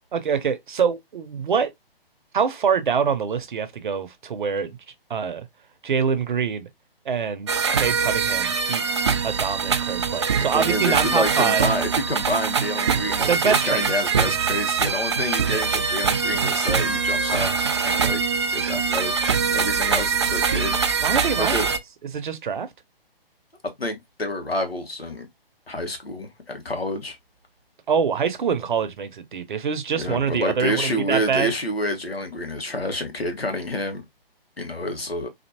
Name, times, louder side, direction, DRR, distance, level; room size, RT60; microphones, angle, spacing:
voice 1, 0.1-1.7 2.3-4.8 5.1-5.5 5.8-6.7 7.1-7.5 7.8-8.8 9.2-11.7 13.3-13.8 21.0-21.6 22.1-22.7 27.9-31.5, right 6 dB, 55° right, 0.7 m, -25 dB
sound 1, 7.5-21.8, right 5 dB, 30° right, 0.4 m, -23 dB
voice 2, 10.5-17.6 17.8-18.2 18.5-19.1 19.5-20.7 21.4-21.7 23.8-25.3 25.7-27.2 29.9-34.0 34.6-35.3, left 1 dB, 85° left, 1.4 m, -28 dB
4.2 x 2.7 x 2.8 m
figure-of-eight pair, 135°, 29 cm